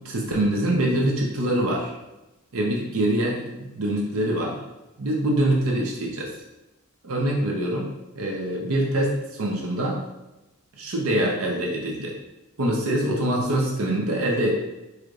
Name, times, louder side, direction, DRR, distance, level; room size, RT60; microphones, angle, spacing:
voice 1, 0.0-1.9 2.5-4.6 5.0-6.3 7.0-10.0 10.7-12.2 12.6-14.6, right 1 dB, 85° right, -1 dB, 0.7 m, -24 dB
4.6 x 3.2 x 2.5 m, 0.99 s
head